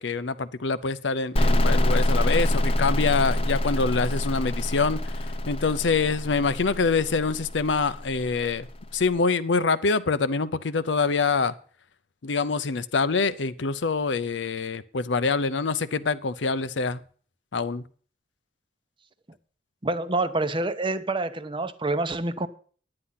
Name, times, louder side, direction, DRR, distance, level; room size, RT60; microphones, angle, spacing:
voice 1, 0.0-8.7 8.9-11.5 12.2-17.0 17.5-17.8, left 4 dB, 85° left, 0.7 m, -25 dB
sound 1, 1.4-8.9, left 1 dB, 35° left, 0.7 m, -26 dB
voice 2, 19.8-22.5, right 2 dB, 30° right, 0.8 m, -27 dB
9.9 x 9.8 x 5.7 m
head